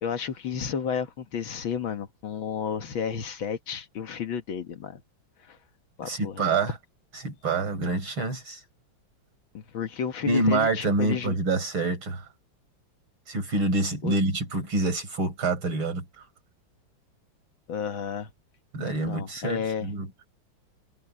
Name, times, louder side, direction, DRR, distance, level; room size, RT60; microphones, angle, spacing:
voice 1, 0.0-5.0 5.5-5.6 6.0-6.5 9.5-11.3 14.0-14.2 17.7-18.3 18.8-19.9, left 7 dB, 70° left, 2.2 m, -32 dB
voice 2, 6.0-6.8 7.1-8.6 10.2-12.3 13.3-16.0 18.7-20.1, right 2 dB, 80° right, 6.0 m, -27 dB
omnidirectional pair, 2.2 m